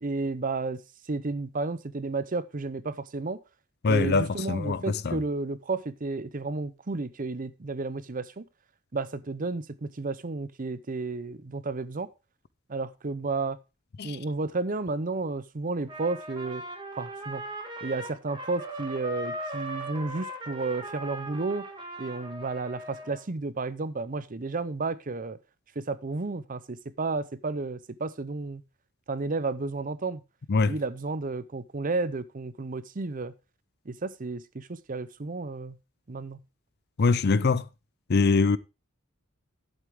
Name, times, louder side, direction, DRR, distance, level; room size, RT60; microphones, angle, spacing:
voice 1, 0.0-0.8 1.1-3.4 3.9-8.4 8.9-12.1 12.7-13.6 14.0-16.6 17.0-17.4 17.8-21.7 22.0-25.4 25.8-28.6 29.1-30.2 30.7-33.3 33.9-35.8 36.1-36.4, right 3 dB, 40° right, 0.7 m, -32 dB
voice 2, 3.8-5.2 14.0-14.2 30.5-30.7 37.0-37.7 38.1-38.6, left 4 dB, 50° left, 0.5 m, -23 dB
Trumpet, 15.9-23.2, right 1 dB, 25° right, 1.8 m, -39 dB
11.0 x 8.1 x 3.6 m
head